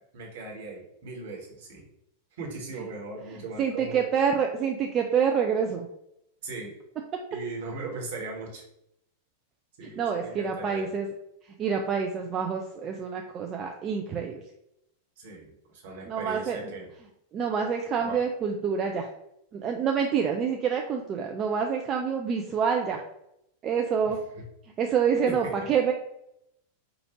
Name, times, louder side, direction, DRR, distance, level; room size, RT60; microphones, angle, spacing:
voice 1, 0.1-1.8 2.4-4.1 6.4-6.7 7.3-8.6 9.8-10.9 15.2-16.9 18.0-18.2 24.3-24.4 25.3-25.4, right 3 dB, 55° right, -2 dB, 1.2 m, -38 dB
voice 2, 3.6-5.9 9.8-11.1 11.6-14.4 16.1-16.6 17.3-19.1 19.5-23.0 23.6-24.2 24.8-25.9, right 6 dB, 30° right, 2 dB, 0.4 m, -27 dB
4.8 x 2.5 x 2.9 m, 0.79 s
figure-of-eight pair, 90°, 0 cm